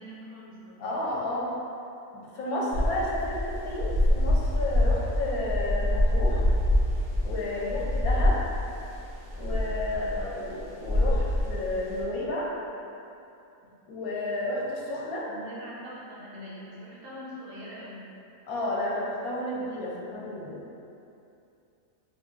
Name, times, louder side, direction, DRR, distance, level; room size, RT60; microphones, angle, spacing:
voice 1, 0.0-0.9 7.4-7.9 9.9-10.6 15.3-18.1, equal, 65° right, -7 dB, 1.2 m, -44 dB
voice 2, 0.8-1.5 2.1-6.4 7.2-8.4 9.4-12.5 13.9-15.3 18.5-20.6, left 1 dB, 80° left, -5 dB, 1.1 m, -32 dB
sound 1, 2.7-12.0, left 1 dB, 45° right, 1.4 m, -26 dB
3.4 x 2.5 x 3.7 m, 2.7 s
omnidirectional pair, 1.5 m